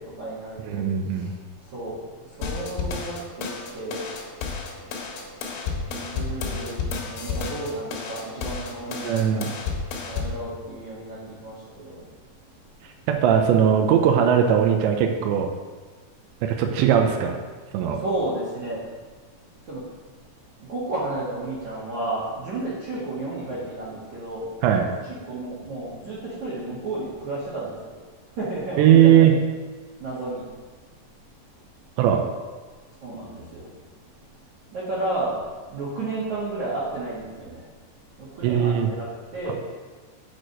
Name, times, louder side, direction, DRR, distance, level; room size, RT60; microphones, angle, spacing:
voice 1, 0.0-0.9 1.1-1.3 1.6-4.0 5.9-9.5 10.0-12.0 17.9-18.9 19.6-19.8 20.6-24.5 25.0-28.0 28.4-29.4 30.0-30.5 33.0-33.7 34.7-35.4 35.7-37.7 38.1-39.5, right 2 dB, 50° right, -8 dB, 2.5 m, -32 dB
voice 2, 0.7-1.3 9.0-9.5 13.1-15.5 16.4-17.4 17.7-18.0 24.6-24.9 28.8-29.3 32.0-32.2 38.4-38.9, right 9 dB, 80° right, 3 dB, 2.6 m, -19 dB
sound 1, 2.4-10.4, left 5 dB, 75° left, 4.2 m, -31 dB
8.9 x 6.4 x 7.7 m, 1.4 s
omnidirectional pair, 5.9 m